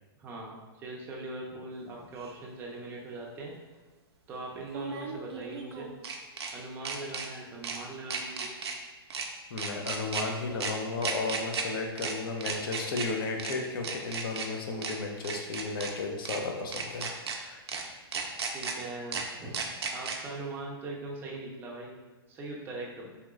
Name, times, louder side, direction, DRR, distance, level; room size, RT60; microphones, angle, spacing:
voice 1, 0.2-3.5 4.3-5.9 6.5-8.5 18.4-19.6 19.9-22.0 22.3-23.1, right 2 dB, 15° right, -2 dB, 0.5 m, -41 dB
sound 1, 2.2-2.3 4.7-6.5 6.9-7.3 7.6-7.8 8.1-8.8 9.1-9.3 9.6-10.2 10.6-10.7 11.0-11.6 12.0-12.1 12.4-13.1 13.4-13.5 13.8-14.5 14.8-14.9 15.2-15.9 16.3-16.4 16.7-17.4 17.7-17.8 18.1-18.7 19.1-19.2 19.5-20.2, right 5 dB, 85° right, 0.5 m, -34 dB
voice 2, 9.5-17.2 17.5-17.6, left 3 dB, 60° left, 2 dB, 0.6 m, -34 dB
3.1 x 2.9 x 2.4 m, 1.3 s
hypercardioid pair, 140°, 13 cm